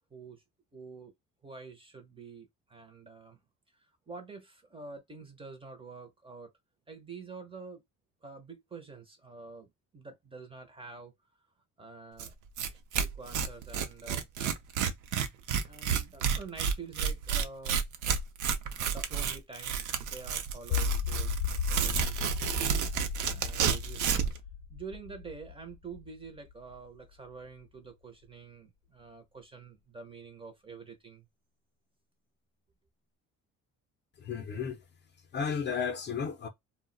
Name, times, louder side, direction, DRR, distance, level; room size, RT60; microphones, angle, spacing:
voice 1, 0.1-0.4 0.7-1.1 1.4-3.4 3.7-6.5 6.9-7.8 8.2-11.1 11.8-12.3 12.7-14.3 15.6-17.8 18.8-21.4 21.7-22.4 22.8-24.2 24.7-31.3, right 4 dB, 20° right, 0.5 m, -47 dB
Tearing, 12.2-12.3 12.6-12.7 12.9-24.4, right 7 dB, 75° right, 0.6 m, -31 dB
sound 1, 20.7-26.8, left 8 dB, 85° left, 0.5 m, -35 dB
voice 2, 34.2-34.8 35.3-36.5, left 6 dB, 35° left, 0.5 m, -33 dB
2.2 x 2.1 x 3.7 m
cardioid pair, 170°, 30 cm